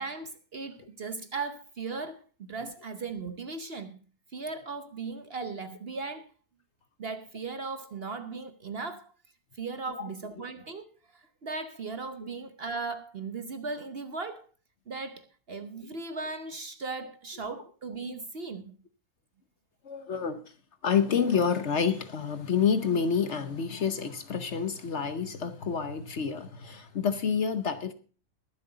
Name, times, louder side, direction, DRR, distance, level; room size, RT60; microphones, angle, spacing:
voice 1, 0.0-4.0 4.3-6.3 7.0-9.1 9.5-14.5 14.9-18.8, right 4 dB, 45° right, 1.0 m, -37 dB
voice 2, 19.8-20.4 20.8-27.9, left 6 dB, 50° left, 1.1 m, -28 dB
22.0 x 7.7 x 3.9 m
omnidirectional pair, 1.7 m